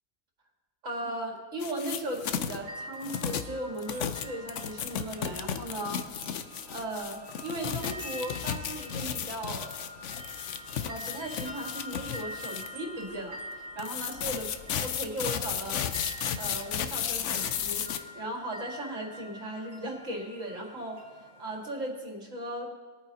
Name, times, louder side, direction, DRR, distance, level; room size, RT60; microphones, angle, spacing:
voice 1, 0.8-6.0 6.7-9.7 10.1-10.3 10.7-14.4 15.0-15.8 16.4-21.0 21.4-22.7, right 1 dB, 70° right, -1 dB, 2.3 m, -37 dB
sound 1, 1.6-2.6 3.0-12.7 13.8-18.0, left 8 dB, 70° left, 0.9 m, -34 dB
sound 2, 2.6-21.7, equal, 35° right, 0.7 m, -46 dB
21.0 x 8.9 x 2.8 m, 1.4 s
omnidirectional pair, 1.4 m